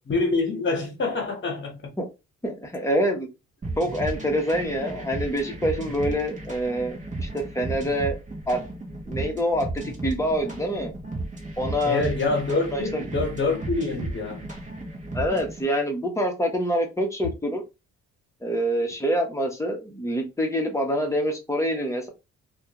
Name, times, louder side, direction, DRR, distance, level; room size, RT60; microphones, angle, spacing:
voice 1, 0.1-1.8 11.8-14.5, left 3 dB, 40° left, 1.2 m, -26 dB
voice 2, 2.4-3.3 3.8-8.2 8.5-8.6 9.0-10.9 11.6-12.0 12.7-13.0 15.1-17.6 18.4-22.1, equal, 10° left, 0.8 m, -26 dB
sound 1, 3.6-15.6, right 2 dB, 25° right, 0.9 m, -34 dB
2.3 x 2.3 x 2.9 m
cardioid pair, 90°, 30 cm